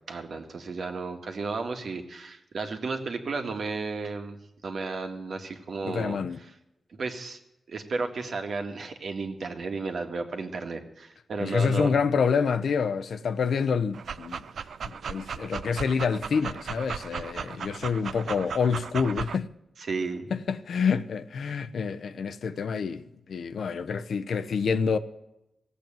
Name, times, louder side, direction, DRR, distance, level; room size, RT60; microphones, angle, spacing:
voice 1, 0.1-4.4 4.6-6.2 6.9-7.4 7.7-11.9 19.9-20.3, right 4 dB, 65° right, 2.0 m, -33 dB
voice 2, 5.8-6.4 11.4-14.4 14.8-19.5 20.3-25.0, left 6 dB, 80° left, 0.9 m, -27 dB
Dog, 13.9-19.4, right 6 dB, 80° right, 0.5 m, -36 dB
16.5 x 8.4 x 8.9 m
wide cardioid pair, 125°, 0 cm